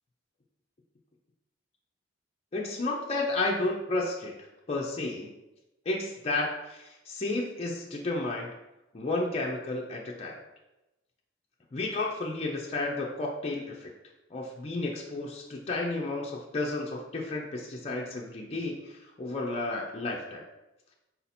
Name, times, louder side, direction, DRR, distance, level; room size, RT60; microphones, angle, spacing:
voice 1, 2.5-5.3 5.9-8.5 8.9-10.4 11.7-13.9 14.3-20.4, left 2 dB, 30° left, -1 dB, 0.4 m, -32 dB
4.1 x 2.8 x 4.1 m, 0.97 s
head